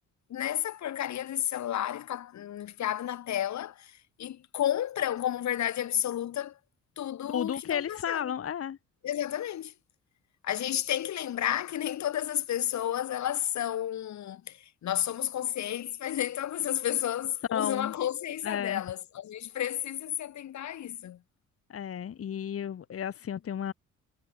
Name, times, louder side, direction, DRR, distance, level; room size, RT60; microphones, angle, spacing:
voice 1, 0.3-6.6 7.0-8.3 9.0-9.7 10.4-21.2, left 11 dB, 65° left, 2.0 m, -32 dB
voice 2, 7.3-8.8 17.5-17.9 18.4-18.8 21.7-23.7, left 9 dB, 50° left, 1.5 m, -33 dB
cardioid pair, 90°, 30 cm